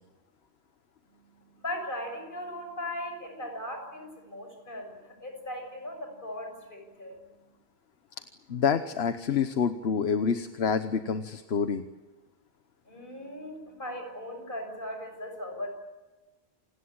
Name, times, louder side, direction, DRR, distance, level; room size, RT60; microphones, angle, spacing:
voice 1, 1.6-7.2 12.9-15.7, left 1 dB, 55° left, 3 dB, 7.1 m, -38 dB
voice 2, 8.5-11.9, left 6 dB, 80° left, 9 dB, 1.3 m, -27 dB
28.5 x 19.0 x 8.8 m, 1.2 s
omnidirectional pair, 1.1 m